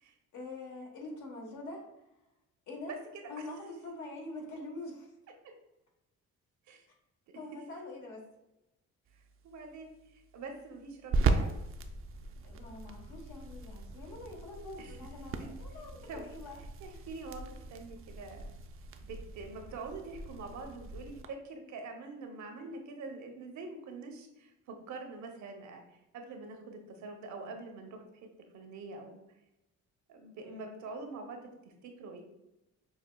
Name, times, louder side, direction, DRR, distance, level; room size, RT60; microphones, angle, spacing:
voice 1, 0.3-1.8 2.7-2.9 3.3-5.1 7.3-8.2 12.4-16.6 16.9-17.0 30.4-30.7, left 2 dB, 80° left, 0 dB, 1.2 m, -45 dB
sound 1, 9.1-21.3, right 3 dB, 45° right, 0.4 m, -38 dB
voice 2, 9.4-11.5 14.8-14.9 15.4-15.5 16.1-16.3 16.8-18.4 19.0-25.8 26.1-28.3 28.5-29.2 30.1-32.2, right 3 dB, 70° right, 4 dB, 0.8 m, -45 dB
5.8 x 2.3 x 2.2 m, 0.94 s
cardioid pair, 90°, 30 cm